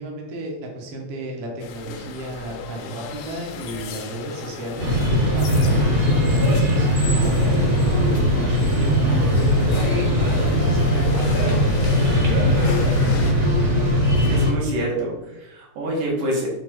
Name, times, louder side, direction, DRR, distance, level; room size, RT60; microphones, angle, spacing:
voice 1, 0.0-13.6, right 1 dB, 60° right, 0 dB, 1.9 m, -33 dB
sound 1, 1.6-13.3, left 6 dB, 80° left, 1.9 m, -37 dB
sound 2, 4.8-14.5, equal, 35° right, 1.2 m, -19 dB
voice 2, 14.3-16.5, right 1 dB, 80° right, -2 dB, 3.1 m, -26 dB
6.3 x 3.8 x 4.6 m, 0.95 s
omnidirectional pair, 3.4 m